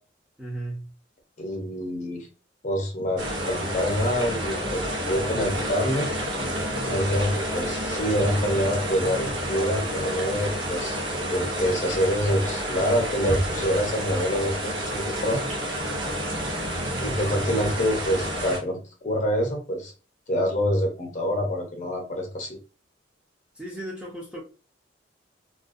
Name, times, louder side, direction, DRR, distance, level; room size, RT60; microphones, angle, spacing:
voice 1, 0.4-0.9 23.6-24.4, right 1 dB, 5° right, 0.6 m, -35 dB
voice 2, 1.4-2.3 2.6-6.1 6.8-11.0 11.3-15.5 17.0-19.9 20.3-22.6, equal, 40° left, 0.7 m, -26 dB
sound 1, 3.2-18.6, equal, 75° right, 0.8 m, -29 dB
2.4 x 2.2 x 2.5 m
head